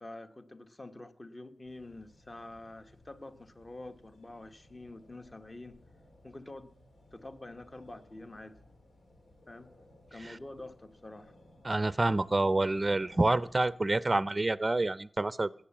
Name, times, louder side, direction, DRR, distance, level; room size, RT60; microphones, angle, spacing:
voice 1, 0.0-5.8 6.2-6.7 7.1-8.6 9.5-9.7 10.1-11.3, left 2 dB, 25° left, 9 dB, 1.1 m, -47 dB
sound 1, 1.6-13.8, left 1 dB, 90° left, 2.6 m, -60 dB
voice 2, 11.6-15.7, right 2 dB, 25° right, 17 dB, 0.5 m, -28 dB
15.5 x 9.6 x 7.2 m, 0.62 s
wide cardioid pair, 120°, 0 cm